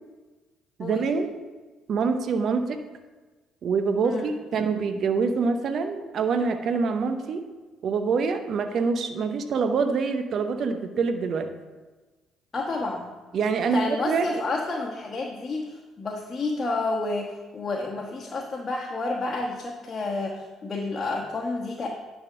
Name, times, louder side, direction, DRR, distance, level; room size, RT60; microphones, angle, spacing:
voice 1, 0.8-1.4 1.9-2.8 3.6-7.5 7.8-11.5 13.3-14.4, right 5 dB, 55° right, 7 dB, 0.7 m, -25 dB
voice 2, 12.5-13.1 13.7-21.9, left 3 dB, 40° left, -1 dB, 1.2 m, -30 dB
10.5 x 3.6 x 6.1 m, 1.3 s
hypercardioid pair, 50°, 0 cm